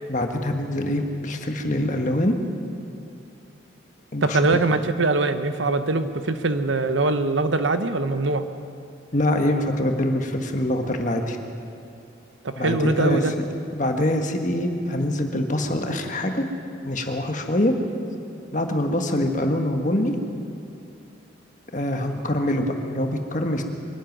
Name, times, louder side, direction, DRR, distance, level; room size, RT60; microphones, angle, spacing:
voice 1, 0.1-2.4 4.1-4.4 9.1-11.4 12.5-13.4 13.7-16.4 16.8-17.7 18.5-20.1 21.7-23.6, left 1 dB, 40° left, 4 dB, 1.6 m, -24 dB
voice 2, 4.2-8.4 12.4-13.3, right 3 dB, 75° right, 9 dB, 1.0 m, -22 dB
23.5 x 12.5 x 9.4 m, 2.6 s
head